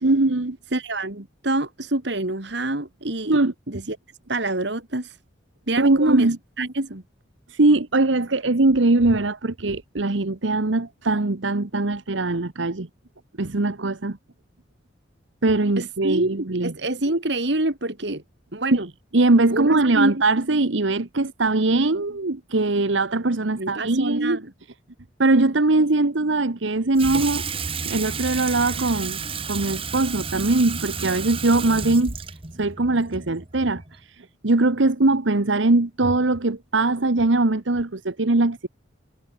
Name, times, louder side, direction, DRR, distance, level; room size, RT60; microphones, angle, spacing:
voice 1, 0.0-0.6 3.3-3.5 5.8-6.4 7.5-12.9 13.4-14.2 15.4-16.7 18.7-18.8 19.1-24.4 25.2-27.5 27.8-29.2 29.5-32.1 32.6-33.8 34.4-38.7, right 2 dB, 80° right, 1.2 m, -21 dB
voice 2, 0.7-3.4 3.7-4.0 4.3-5.2 5.7-6.3 6.6-7.0 15.8-18.2 18.5-18.9 19.5-20.1 23.6-24.4, right 1 dB, 65° right, 2.5 m, -25 dB
Water tap faucet / Sink (filling or washing), 27.0-34.0, right 5 dB, 30° right, 1.7 m, -31 dB
head